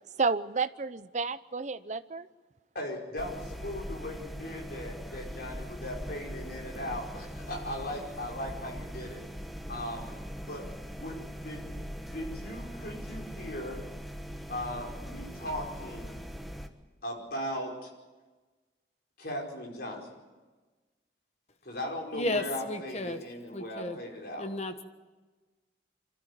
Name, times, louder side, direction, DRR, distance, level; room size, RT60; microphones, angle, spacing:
voice 1, 0.2-2.3, right 4 dB, 40° right, 14 dB, 0.7 m, -31 dB
voice 2, 2.7-9.2 9.7-10.1 10.5-11.7 12.0-13.8 14.5-16.2 17.0-17.9 19.2-20.1 21.6-24.5, left 1 dB, 55° left, 0 dB, 4.9 m, -38 dB
sound 1, 3.2-16.7, equal, ahead, 1.2 m, -41 dB
voice 3, 22.1-24.0 24.4-24.8, left 2 dB, 35° left, 8 dB, 1.4 m, -34 dB
25.0 x 13.5 x 9.7 m, 1.3 s
head